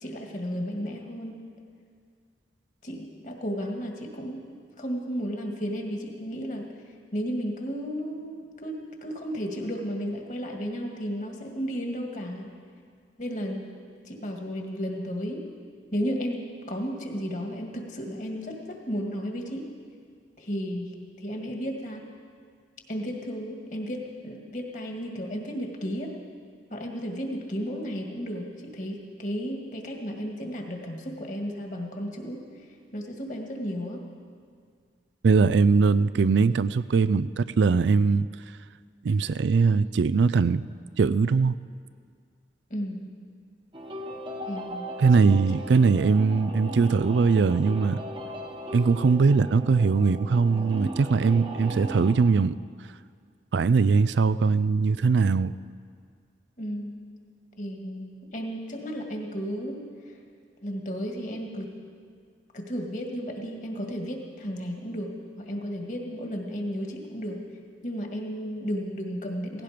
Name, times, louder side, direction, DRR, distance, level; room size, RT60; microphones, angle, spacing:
voice 1, 0.0-1.4 2.8-4.4 4.8-6.7 7.1-12.5 13.2-13.6 14.1-15.4 15.9-19.7 20.4-20.9 21.2-22.1 22.9-26.1 26.7-32.7 32.9-34.1 42.7-43.1 44.5-45.2 56.6-56.9 57.6-60.2 60.6-61.7 62.5-67.4 67.8-69.6, equal, 45° left, 2 dB, 1.9 m, -33 dB
voice 2, 35.2-38.3 39.0-40.6 41.0-41.6 45.0-48.0 48.7-52.6 53.5-55.5, right 4 dB, 80° right, 16 dB, 0.4 m, -21 dB
sound 1, 43.7-52.1, right 1 dB, 25° right, 1.1 m, -37 dB
17.0 x 16.5 x 5.1 m, 2.1 s
head